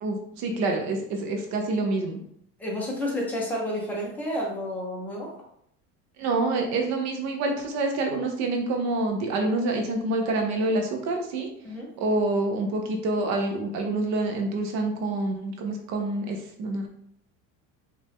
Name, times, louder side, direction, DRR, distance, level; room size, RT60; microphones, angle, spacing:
voice 1, 0.0-2.2 6.2-11.5 12.0-16.9, right 2 dB, 55° right, 3 dB, 0.8 m, -27 dB
voice 2, 2.6-5.3 11.6-11.9, left 1 dB, 5° left, -4 dB, 1.1 m, -30 dB
5.2 x 2.7 x 3.5 m, 0.71 s
cardioid pair, 160°, 33 cm